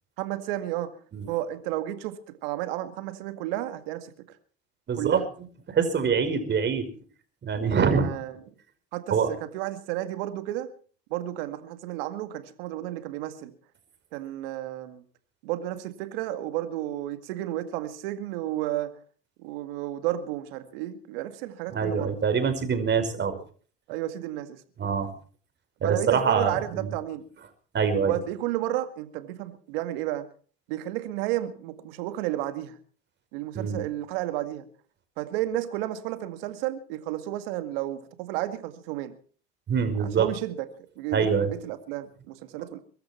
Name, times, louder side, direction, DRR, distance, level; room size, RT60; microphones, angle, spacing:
voice 1, 0.2-1.0 1.3-4.1 5.0-5.3 8.0-8.3 8.9-10.7 11.1-13.5 14.1-15.0 15.4-18.9 19.4-22.1 23.9-24.6 25.8-27.2 28.0-30.3 30.7-32.8 33.3-34.7 35.2-39.1 40.2-40.7 41.0-42.8, right 14 dB, 75° right, 2.1 m, -32 dB
voice 2, 4.9-5.2 5.7-6.9 7.4-8.1 9.1-9.3 21.7-23.4 24.8-25.1 25.8-26.9 27.7-28.2 33.5-33.8 39.7-40.3 41.1-41.5, right 6 dB, 40° right, 5.3 m, -24 dB
23.5 x 13.0 x 4.5 m
hypercardioid pair, 85°, 29 cm